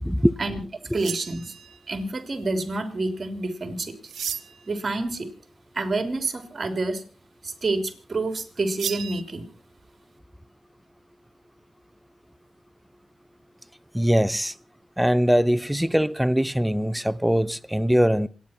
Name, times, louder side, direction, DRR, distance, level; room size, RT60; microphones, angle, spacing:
voice 1, 0.0-0.3 0.9-1.0 13.9-14.5 15.0-18.3, equal, 5° right, 0.8 m, -22 dB
voice 2, 0.9-1.5 1.9-3.9 4.7-5.3 5.7-7.0 7.4-9.5, right 2 dB, 45° right, 3.3 m, -28 dB
sound 1, 0.9-1.9 4.1-4.7 8.8-9.2, right 8 dB, 75° right, 1.2 m, -34 dB
27.0 x 10.0 x 4.5 m
supercardioid pair, 50°, 0 cm